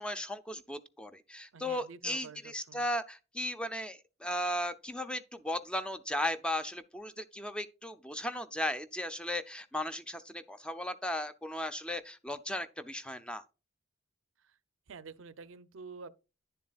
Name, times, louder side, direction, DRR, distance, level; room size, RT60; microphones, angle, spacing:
voice 1, 0.0-13.4, left 1 dB, 5° left, 0.5 m, -36 dB
voice 2, 1.5-2.9 14.4-14.5 14.9-16.1, right 5 dB, 70° right, 0.6 m, -48 dB
10.5 x 7.3 x 2.3 m
head